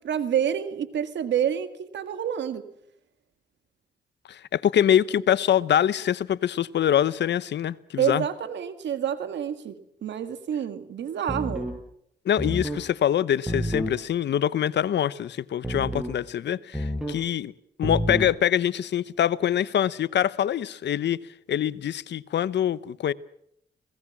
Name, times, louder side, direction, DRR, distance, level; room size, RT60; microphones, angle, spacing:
voice 1, 0.0-2.7 8.0-11.7, right 9 dB, 80° right, 2.0 m, -28 dB
voice 2, 4.3-8.2 12.2-17.5 17.8-21.2 21.5-23.1, left 10 dB, 75° left, 0.8 m, -24 dB
sound 1, 11.3-11.8 12.4-12.8 13.5-14.0 15.6-16.2 16.7-17.2 17.8-18.3, equal, 5° right, 6.5 m, -29 dB
27.5 x 19.0 x 7.3 m
cardioid pair, 60°, 18 cm